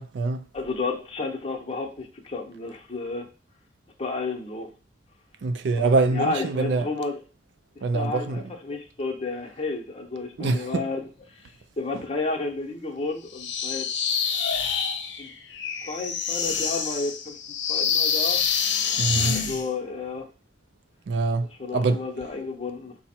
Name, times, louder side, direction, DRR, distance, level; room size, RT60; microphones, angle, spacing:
voice 1, 0.0-0.5 5.4-6.9 7.8-8.4 10.4-10.9 19.0-19.4 21.1-22.0, right 3 dB, 75° right, 0.4 m, -24 dB
voice 2, 0.5-3.3 4.0-4.7 5.8-7.2 7.9-13.9 15.2-15.3 15.8-17.4 17.7-18.4 19.3-20.3 21.6-23.0, left 3 dB, 35° left, 0.8 m, -32 dB
sound 1, 13.3-19.7, left 6 dB, 80° left, 0.6 m, -26 dB
5.6 x 2.1 x 4.3 m
head